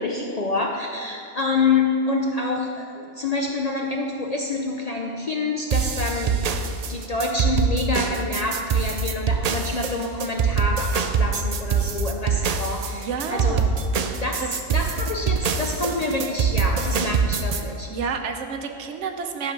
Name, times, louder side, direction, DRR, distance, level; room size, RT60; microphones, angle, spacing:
voice 1, 0.0-13.6 14.2-17.9, left 3 dB, 50° left, 1 dB, 0.5 m, -27 dB
sound 1, 5.7-17.6, right 5 dB, 90° right, 0.3 m, -23 dB
voice 2, 12.9-13.7 14.4-14.5 17.9-19.5, right 5 dB, 75° right, 6 dB, 1.0 m, -30 dB
11.0 x 3.8 x 5.9 m, 2.7 s
omnidirectional pair, 1.3 m